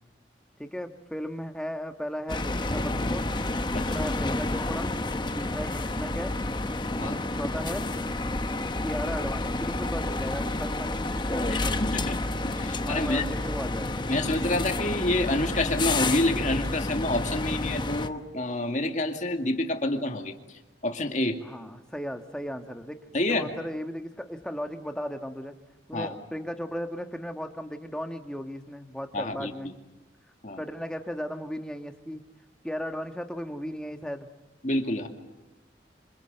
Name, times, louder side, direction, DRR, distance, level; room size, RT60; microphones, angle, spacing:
voice 1, 0.6-3.3 3.7-5.0 5.3-6.3 7.0-7.9 8.8-12.0 12.7-13.9 21.4-25.6 25.9-29.7 30.6-32.3 32.6-34.3 35.0-35.1, equal, 5° left, 6 dB, 1.4 m, -36 dB
sound 1, 2.3-18.1, left 2 dB, 25° left, 1.0 m, -30 dB
voice 2, 3.7-4.0 7.0-7.2 11.5-13.3 14.1-21.4 23.1-23.5 25.9-26.1 29.1-29.5 30.4-30.6 34.6-35.1, left 1 dB, 40° left, 4 dB, 2.2 m, -28 dB
28.0 x 26.0 x 7.9 m, 1.0 s
head